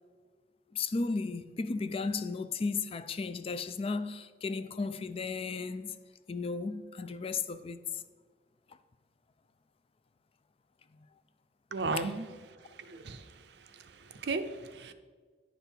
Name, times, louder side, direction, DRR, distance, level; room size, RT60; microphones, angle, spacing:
voice 1, 0.7-5.9 6.3-7.8 12.0-12.1, left 4 dB, 30° left, 0.3 m, -34 dB
voice 2, 11.7-12.3 12.8-13.3 13.7-14.9, right 3 dB, 70° right, 0.6 m, -35 dB
10.5 x 5.4 x 4.5 m
head